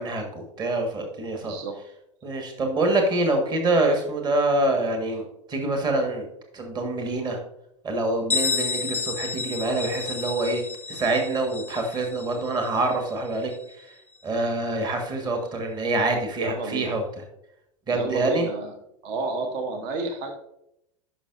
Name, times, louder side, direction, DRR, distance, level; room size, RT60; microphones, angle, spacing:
voice 1, 0.0-1.6 2.2-6.3 6.5-7.4 7.8-10.6 10.9-13.9 14.2-17.0 17.9-18.5, right 2 dB, 25° right, 3 dB, 1.6 m, -26 dB
voice 2, 1.4-1.8 16.4-17.0 17.9-18.7 19.0-20.3, right 3 dB, 50° right, 5 dB, 1.1 m, -30 dB
Bell, 8.3-13.8, left 5 dB, 10° left, 0.5 m, -31 dB
11.0 x 5.7 x 2.6 m, 0.79 s
figure-of-eight pair, 85°, 17 cm